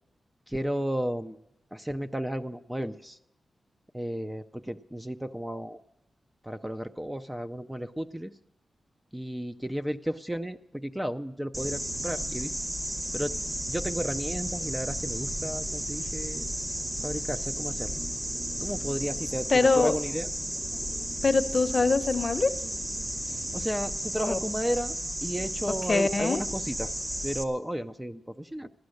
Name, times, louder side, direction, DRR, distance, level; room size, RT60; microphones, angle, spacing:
voice 1, 0.5-1.4 1.7-3.2 3.9-5.8 6.4-8.3 9.1-12.5 13.1-13.3 13.7-16.5 17.0-17.9 18.6-19.5 19.8-20.3 23.3-25.0 25.2-28.7, equal, 5° right, 8 dB, 0.4 m, -33 dB
sound 1, 11.5-27.4, equal, 25° right, 1.3 m, -33 dB
voice 2, 19.5-19.9 21.2-22.5 24.3-24.4 25.9-26.4, left 3 dB, 35° left, 10 dB, 0.7 m, -23 dB
15.5 x 11.5 x 6.4 m, 0.90 s
wide cardioid pair, 115°, 0 cm